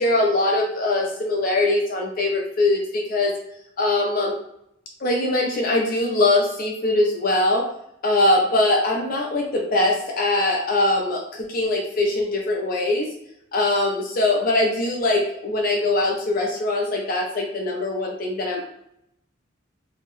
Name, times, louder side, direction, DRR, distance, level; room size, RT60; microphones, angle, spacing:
voice 1, 0.0-3.4 3.8-4.4 5.0-7.7 8.0-13.1 13.5-18.7, left 2 dB, 45° left, 0 dB, 0.5 m, -22 dB
2.7 x 2.1 x 3.0 m, 0.76 s
head